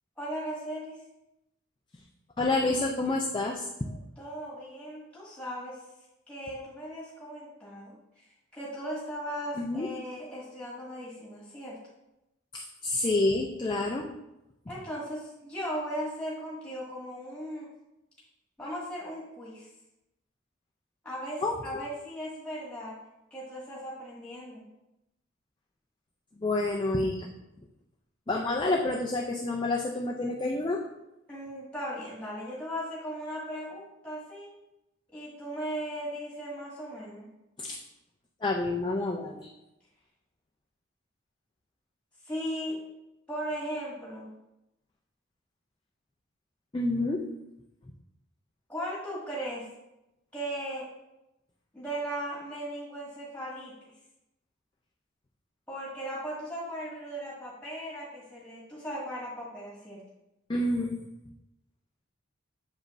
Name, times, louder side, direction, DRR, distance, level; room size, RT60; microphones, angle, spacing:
voice 1, 0.2-1.0 4.2-5.8 6.3-11.8 14.7-17.7 18.6-19.7 21.0-23.0 23.3-24.7 31.3-34.5 35.1-37.3 42.2-42.8 43.3-44.3 48.7-49.7 50.3-50.9 51.7-53.9 55.7-60.0, equal, 5° left, -7 dB, 1.9 m, -37 dB
voice 2, 2.4-3.9 9.6-9.9 12.5-14.0 21.4-21.5 26.4-27.3 28.3-30.8 37.6-37.8 38.4-39.5 46.7-47.2 60.5-61.0, left 2 dB, 20° left, -1 dB, 0.4 m, -28 dB
7.3 x 5.1 x 2.6 m, 0.91 s
head